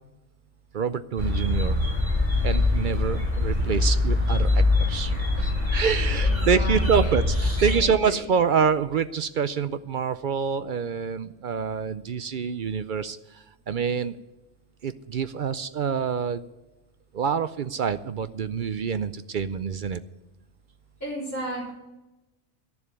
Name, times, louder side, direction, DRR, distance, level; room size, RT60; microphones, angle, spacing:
voice 1, 0.7-1.8 2.4-14.2 14.8-16.4 17.1-20.0, right 6 dB, 55° right, 13 dB, 0.6 m, -26 dB
sound 1, 1.2-7.8, left 2 dB, 25° right, 3.6 m, -23 dB
voice 2, 6.1-7.1 7.6-8.3 21.0-21.7, equal, 15° left, -8 dB, 3.8 m, -35 dB
12.5 x 7.1 x 9.6 m, 1.0 s
omnidirectional pair, 1.2 m